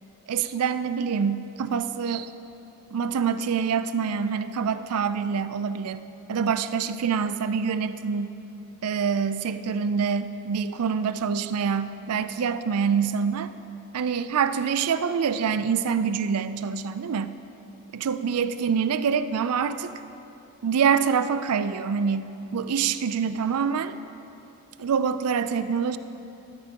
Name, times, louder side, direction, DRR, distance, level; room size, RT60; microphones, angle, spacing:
voice 1, 0.3-2.3 2.9-8.3 8.8-13.5 13.9-17.4 17.9-19.9 20.6-24.0 24.8-26.0, right 6 dB, 85° right, 12 dB, 0.4 m, -26 dB
13.5 x 12.5 x 2.9 m, 2.9 s
head